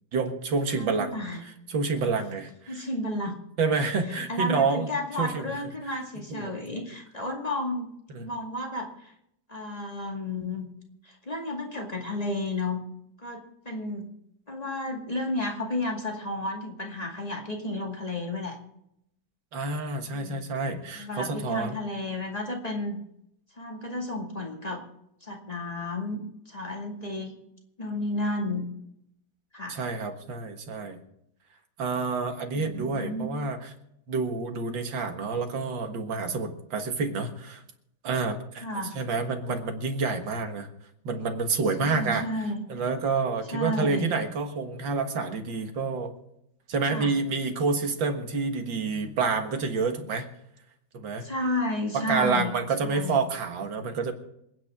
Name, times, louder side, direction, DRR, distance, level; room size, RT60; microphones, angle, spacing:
voice 1, 0.1-1.1 1.7-2.9 3.6-4.9 5.2-5.5 5.8-5.9 6.3-6.5 8.1-8.3 19.5-21.8 29.7-31.0 31.8-33.7 34.1-37.6 38.0-38.6 38.9-40.7 41.0-42.3 42.7-46.1 46.7-50.3 50.9-51.3 51.9-54.1, right 4 dB, 90° right, 5 dB, 2.3 m, -28 dB
voice 2, 0.7-1.5 2.7-3.3 4.1-7.9 8.2-9.1 9.5-10.7 11.0-12.8 13.2-14.1 14.5-18.6 20.0-20.4 21.0-23.0 23.6-24.8 25.2-27.3 27.8-28.7 29.5-29.8 32.5-33.3 38.6-38.9 41.8-42.6 43.5-44.1 46.9-47.1 51.2-52.5 52.8-53.2, left 1 dB, 20° left, 0 dB, 2.1 m, -32 dB
27.0 x 9.5 x 3.6 m, 0.77 s
omnidirectional pair, 2.0 m